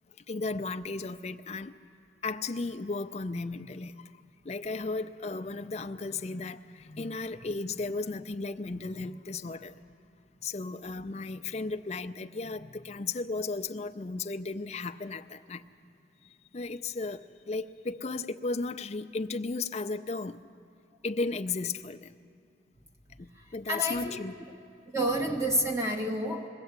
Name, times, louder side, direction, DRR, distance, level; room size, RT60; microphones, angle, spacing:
voice 1, 0.3-1.8 2.2-4.1 4.4-9.8 10.4-15.6 16.5-20.4 21.0-22.1 23.2-24.4, left 3 dB, 35° left, 9 dB, 0.5 m, -35 dB
voice 2, 23.7-24.2 24.9-26.5, right 1 dB, 15° right, 1 dB, 1.4 m, -29 dB
21.0 x 16.0 x 8.0 m, 2.4 s
head